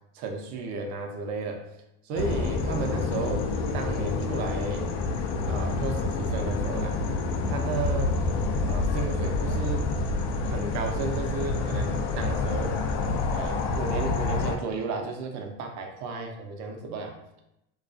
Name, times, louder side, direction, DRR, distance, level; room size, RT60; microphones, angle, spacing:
voice 1, 0.1-1.6 2.0-3.5 3.7-4.9 5.5-7.0 7.4-8.2 8.7-9.9 10.4-12.8 13.3-17.2, right 4 dB, 55° right, 4 dB, 0.6 m, -33 dB
sound 1, 2.1-14.6, left 3 dB, 75° left, 0.5 m, -28 dB
2.3 x 2.2 x 2.5 m, 0.86 s
supercardioid pair, 115°, 34 cm